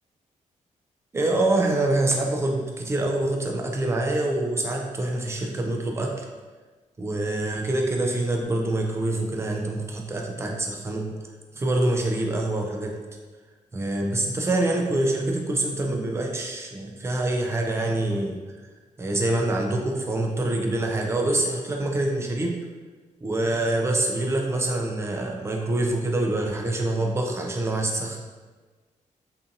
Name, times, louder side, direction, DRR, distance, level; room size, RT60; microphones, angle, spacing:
voice 1, 1.1-6.3 7.0-11.2 11.6-12.9 13.7-18.4 19.0-22.6 23.2-28.2, right 2 dB, 20° right, 1 dB, 0.4 m, -25 dB
2.6 x 2.5 x 2.5 m, 1.4 s
wide cardioid pair, 135°, 14 cm